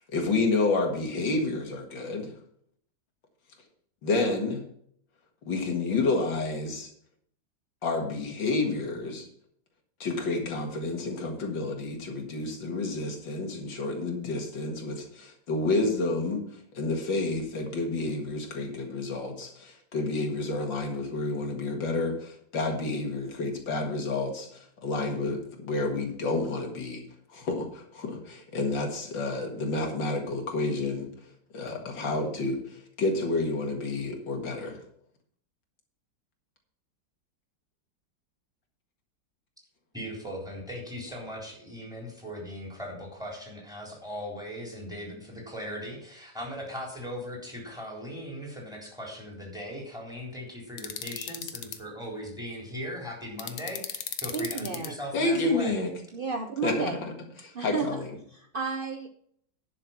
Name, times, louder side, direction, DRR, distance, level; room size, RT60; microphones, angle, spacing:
voice 1, 0.1-2.3 4.0-4.6 5.4-6.9 7.8-9.3 10.0-16.4 16.7-27.0 27.3-31.1 31.5-34.8 55.1-55.9 56.6-57.1 57.4-58.1, left 3 dB, 80° left, 2 dB, 2.6 m, -29 dB
voice 2, 39.9-55.7, equal, ahead, -2 dB, 3.8 m, -39 dB
sound 1, 50.8-51.8 53.4-54.9, left 9 dB, 65° left, 1.3 m, -36 dB
voice 3, 54.3-54.9 56.1-57.0 57.5-58.0 58.3-59.1, right 4 dB, 85° right, 6 dB, 0.4 m, -32 dB
11.0 x 6.4 x 5.9 m, 0.65 s
omnidirectional pair, 2.0 m